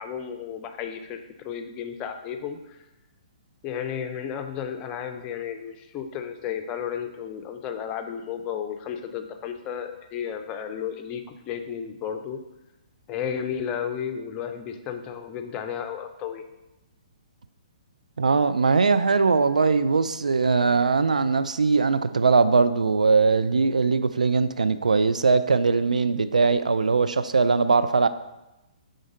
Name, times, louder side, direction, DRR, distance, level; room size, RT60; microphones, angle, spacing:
voice 1, 0.0-2.8 3.6-12.4 13.1-16.4, left 8 dB, 25° left, 6 dB, 0.5 m, -33 dB
voice 2, 18.2-28.1, right 4 dB, 80° right, 11 dB, 0.3 m, -21 dB
5.1 x 3.8 x 5.0 m, 0.95 s
figure-of-eight pair, 125°, 4 cm